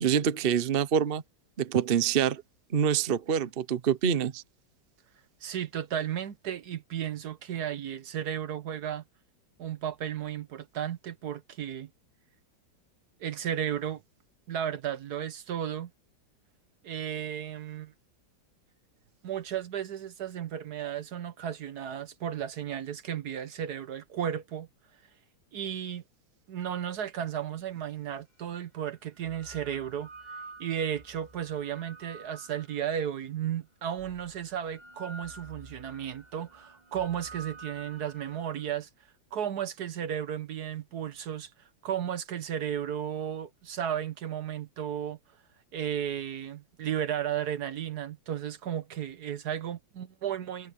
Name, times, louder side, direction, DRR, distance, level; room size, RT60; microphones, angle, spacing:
voice 1, 0.0-1.2 1.6-2.4 2.7-4.4, right 8 dB, 45° right, 0.7 m, -26 dB
voice 2, 5.4-9.0 9.6-11.9 13.2-14.0 14.5-15.9 16.8-17.9 19.2-24.7 25.5-26.0 26.5-30.1 30.6-38.9 39.3-41.5 41.8-45.2 45.7-50.7, right 9 dB, 60° right, 1.3 m, -34 dB
sound 1, 27.9-28.0 29.0-33.2 34.0-38.7, right 3 dB, 20° right, 2.7 m, -49 dB
omnidirectional pair, 2.1 m